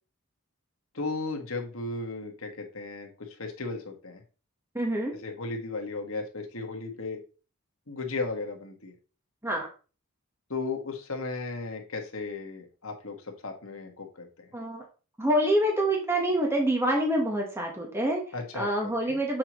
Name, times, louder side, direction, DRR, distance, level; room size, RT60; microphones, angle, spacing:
voice 1, 0.9-4.2 5.1-7.2 7.9-8.9 10.5-14.5 18.3-19.2, left 3 dB, 70° left, 2 dB, 1.6 m, -35 dB
voice 2, 4.7-5.1 9.4-9.7 14.5-14.8 15.2-18.2 18.5-19.4, right 1 dB, 10° right, 0 dB, 1.2 m, -26 dB
7.7 x 5.6 x 3.1 m, 0.35 s
head